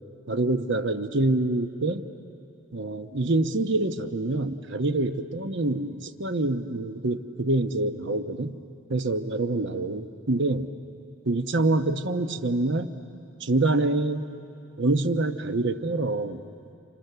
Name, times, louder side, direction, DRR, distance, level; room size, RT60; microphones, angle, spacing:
voice 1, 0.3-2.0 2.7-8.6 8.9-10.7 11.2-12.9 13.4-14.3 14.8-16.4, right 2 dB, 55° right, 8 dB, 1.1 m, -26 dB
29.5 x 29.0 x 6.9 m, 2.6 s
head